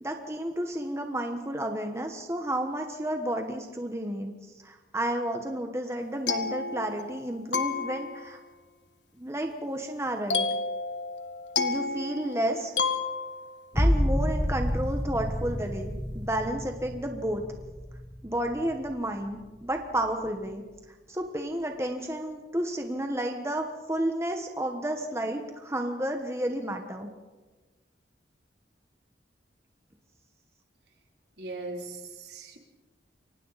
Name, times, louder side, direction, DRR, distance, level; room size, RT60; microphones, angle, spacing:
voice 1, 0.0-4.3 4.6-8.4 9.2-10.5 11.6-12.7 13.7-17.4 18.2-20.6 21.1-27.1, right 1 dB, 15° right, 4 dB, 1.3 m, -31 dB
sound 1, 6.0-7.2 7.5-8.4 10.3-13.7, left 4 dB, 80° left, 1.8 m, -31 dB
sound 2, 13.7-19.2 19.7-20.3, equal, 10° left, 1.0 m, -30 dB
voice 2, 31.4-32.6, right 2 dB, 65° right, 1 dB, 3.4 m, -39 dB
29.0 x 24.5 x 4.2 m, 1.2 s
head